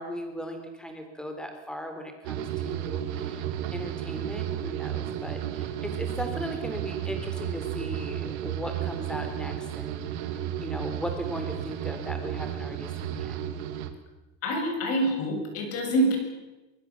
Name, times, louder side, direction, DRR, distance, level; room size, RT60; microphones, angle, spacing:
voice 1, 0.0-13.3, equal, ahead, 5 dB, 3.7 m, -38 dB
sound 1, 2.2-13.9, right 10 dB, 90° right, 2.8 m, -33 dB
voice 2, 14.4-16.2, right 1 dB, 45° left, 3 dB, 7.5 m, -26 dB
23.5 x 23.0 x 7.4 m, 1.1 s
cardioid pair, 165°, 33 cm